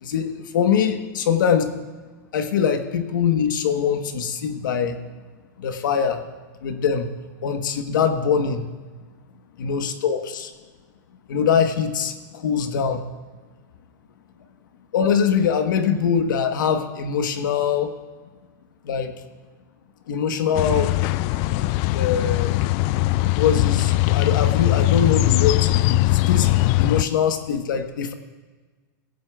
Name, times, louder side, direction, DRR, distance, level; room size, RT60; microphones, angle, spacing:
voice 1, 0.0-1.7 2.3-5.0 5.6-6.3 6.6-7.1 7.4-8.7 9.6-10.5 11.3-13.0 14.9-17.9 18.8-19.1 20.1-21.0 21.9-22.6 23.4-28.1, left 7 dB, 85° left, 7 dB, 1.1 m, -23 dB
sound 1, 20.5-27.0, left 18 dB, 45° left, 0.3 m, -20 dB
18.0 x 16.0 x 2.3 m, 1.3 s
supercardioid pair, 140°, 10 cm